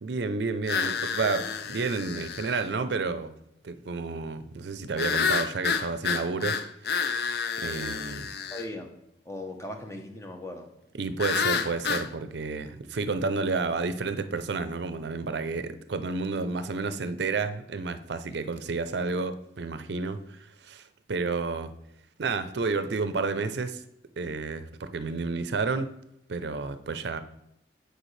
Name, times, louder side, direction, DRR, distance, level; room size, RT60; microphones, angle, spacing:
voice 1, 0.0-3.3 3.6-6.6 6.9-7.2 7.6-8.3 11.0-20.4 20.6-21.7 22.2-23.8 24.2-25.9 26.3-27.2, right 4 dB, 75° right, 11 dB, 0.5 m, -31 dB
sound 1, 0.7-2.6 5.0-8.6 11.2-12.1, left 6 dB, 60° left, 0.4 m, -29 dB
voice 2, 8.5-8.9 9.2-10.7, left 1 dB, 15° left, 4 dB, 0.8 m, -38 dB
8.9 x 4.8 x 3.2 m, 0.82 s
head